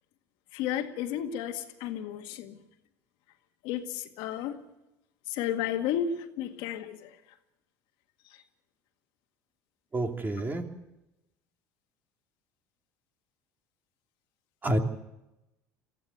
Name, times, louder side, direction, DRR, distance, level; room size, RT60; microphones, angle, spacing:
voice 1, 0.5-2.6 3.6-4.6 5.3-7.1, left 9 dB, 70° left, 6 dB, 1.9 m, -32 dB
voice 2, 9.9-10.6 14.6-14.8, right 1 dB, 25° right, 4 dB, 2.8 m, -28 dB
22.5 x 15.0 x 8.1 m, 0.94 s
supercardioid pair, 95°, 8 cm